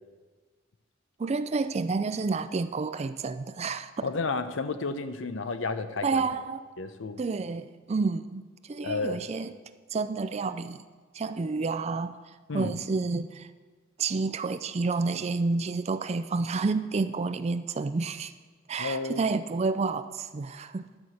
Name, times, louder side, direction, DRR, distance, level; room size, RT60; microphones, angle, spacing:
voice 1, 1.2-4.1 6.0-6.7 7.2-9.5 9.9-10.8 11.1-12.2 12.5-13.5 14.0-18.3 18.7-20.9, right 4 dB, 35° right, 12 dB, 0.4 m, -29 dB
voice 2, 4.0-6.2 6.8-7.2 8.8-9.2 12.5-12.7 18.8-19.2, left 3 dB, 90° left, 10 dB, 0.7 m, -31 dB
11.0 x 5.8 x 7.9 m, 1.4 s
head